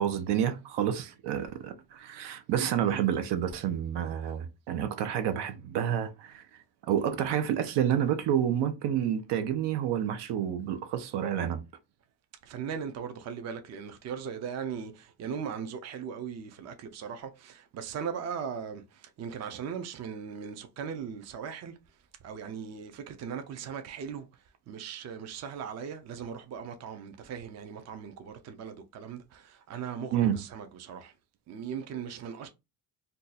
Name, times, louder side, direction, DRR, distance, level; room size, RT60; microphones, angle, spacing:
voice 1, 0.0-6.4 6.9-11.6 30.1-30.4, right 9 dB, 80° right, 0.7 m, -29 dB
voice 2, 12.4-21.7 22.2-24.3 24.7-31.1 31.5-32.5, right 7 dB, 40° right, 0.5 m, -38 dB
2.7 x 2.3 x 3.9 m
cardioid pair, 150°, 41 cm